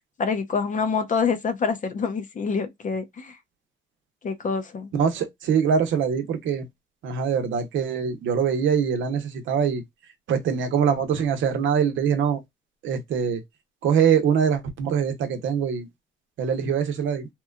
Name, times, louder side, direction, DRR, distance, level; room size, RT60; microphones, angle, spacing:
voice 1, 0.2-3.4 4.2-4.9, left 5 dB, 40° left, 0.5 m, -26 dB
voice 2, 4.9-6.7 7.0-9.8 10.3-12.4 12.8-13.4 13.8-15.9 16.4-17.3, right 7 dB, 75° right, 0.8 m, -23 dB
2.9 x 2.2 x 2.3 m
cardioid pair, 90°, 20 cm